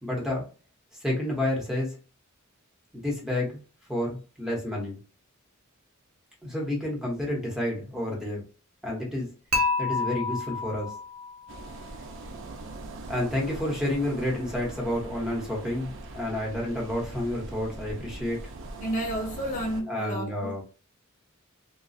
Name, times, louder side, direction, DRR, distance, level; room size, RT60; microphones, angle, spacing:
voice 1, 0.0-0.5 1.0-2.0 2.9-3.6 3.9-5.0 6.4-8.4 8.8-9.3 9.8-10.9 13.1-18.4 19.9-20.6, left 1 dB, ahead, 1.0 m, -30 dB
Dishes pots and pans / Chink clink, 9.5-11.6, left 3 dB, 80° right, 0.9 m, -29 dB
sound 1, 11.5-19.8, right 2 dB, 60° right, 0.5 m, -41 dB
voice 2, 18.8-20.6, equal, 40° left, 0.8 m, -31 dB
3.9 x 2.3 x 2.4 m
head